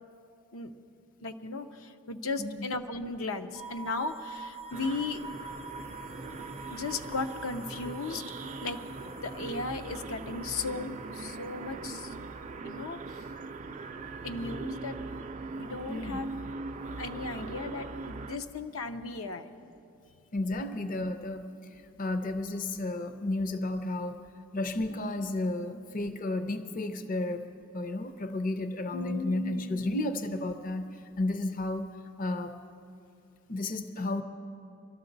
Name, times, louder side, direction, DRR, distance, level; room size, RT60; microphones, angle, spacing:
voice 1, 1.2-5.3 6.7-8.2 8.6-8.8 9.2-12.1 12.6-13.0 14.2-15.0 15.6-16.3 17.0-19.5 28.9-30.0, left 3 dB, 80° left, 8 dB, 0.7 m, -36 dB
voice 2, 2.4-2.7 15.9-16.3 20.3-24.2 24.5-27.4 27.7-31.9 32.2-32.6 33.5-34.2, left 2 dB, 40° left, 9 dB, 0.5 m, -32 dB
sound 1, 3.5-12.6, right 3 dB, 65° left, 1.1 m, -47 dB
sound 2, 4.7-18.4, right 3 dB, 35° right, 0.5 m, -41 dB
23.5 x 12.5 x 4.0 m, 2.6 s
head